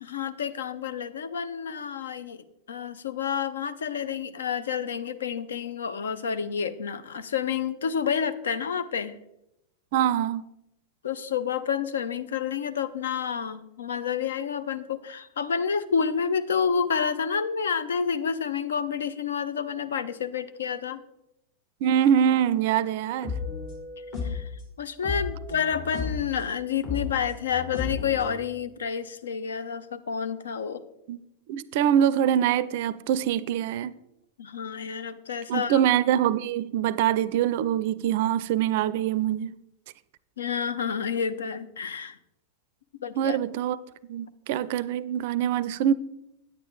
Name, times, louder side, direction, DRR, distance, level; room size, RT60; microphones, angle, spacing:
voice 1, 0.0-9.2 11.0-21.0 24.2-24.5 24.8-30.8 34.4-35.8 40.4-42.2 43.0-43.4, left 7 dB, 65° left, 0.6 m, -29 dB
voice 2, 9.9-10.4 21.8-23.3 31.1-31.2 31.5-33.9 35.5-39.6 43.2-43.8 44.1-45.9, right 10 dB, 50° right, 0.4 m, -24 dB
sound 1, 23.2-24.5 25.0-26.3 26.8-28.4, left 5 dB, 45° left, 2.9 m, -33 dB
9.4 x 8.6 x 3.8 m
figure-of-eight pair, 90°, 0 cm